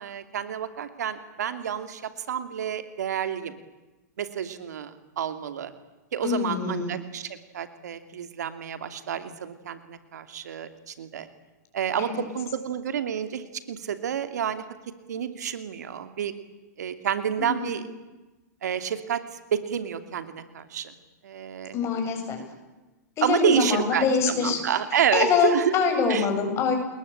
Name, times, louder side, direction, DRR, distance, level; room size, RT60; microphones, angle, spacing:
voice 1, 0.0-2.0 2.3-3.6 4.2-5.7 6.1-11.3 11.7-14.6 15.1-16.3 16.8-17.9 18.6-19.2 19.5-20.9 21.2-21.7 23.2-25.7 26.1-26.2, right 8 dB, 75° right, 10 dB, 2.7 m, -29 dB
voice 2, 6.2-6.9 12.0-12.2 17.4-17.8 21.7-22.4 23.2-24.6 24.9-26.7, left 5 dB, 30° left, 4 dB, 7.8 m, -25 dB
29.5 x 21.0 x 8.8 m, 1.1 s
hypercardioid pair, 130°, 9 cm